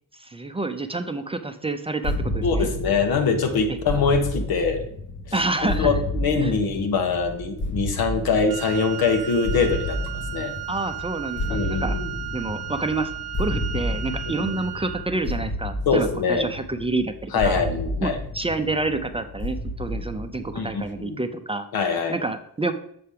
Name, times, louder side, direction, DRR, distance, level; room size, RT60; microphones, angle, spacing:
voice 1, 0.2-2.7 3.7-3.8 5.3-6.0 6.4-6.6 10.7-12.0 12.3-13.1 13.4-17.6 18.0-21.7 22.1-22.7, right 2 dB, 15° right, 7 dB, 0.5 m, -28 dB
sound 1, 2.0-20.9, left 1 dB, 30° left, 0.7 m, -31 dB
voice 2, 2.4-4.8 5.6-10.0 10.3-10.5 11.5-12.1 14.3-14.5 15.9-16.5 17.3-18.2 20.5-21.2 21.7-22.2, left 4 dB, 80° left, 6 dB, 1.1 m, -23 dB
Wind instrument woodwind instrument, 8.5-15.1, right 15 dB, 85° right, 0.6 m, -35 dB
6.9 x 3.4 x 5.6 m, 0.69 s
cardioid pair, 90°, 36 cm